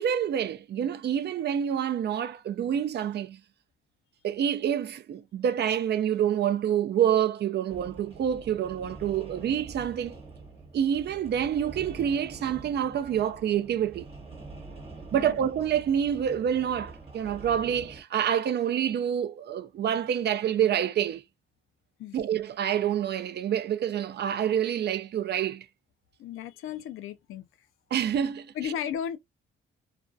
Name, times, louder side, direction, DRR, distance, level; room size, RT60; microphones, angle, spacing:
voice 1, 0.0-3.4 4.2-10.2 10.7-14.1 15.1-21.2 22.1-25.7 27.9-28.7, right 9 dB, 50° right, 0.4 m, -27 dB
sound 1, 7.7-18.0, right 3 dB, 25° right, 1.0 m, -45 dB
voice 2, 26.2-27.5 28.6-29.2, left 9 dB, 80° left, 0.5 m, -34 dB
2.4 x 2.3 x 2.4 m
cardioid pair, 85°, 21 cm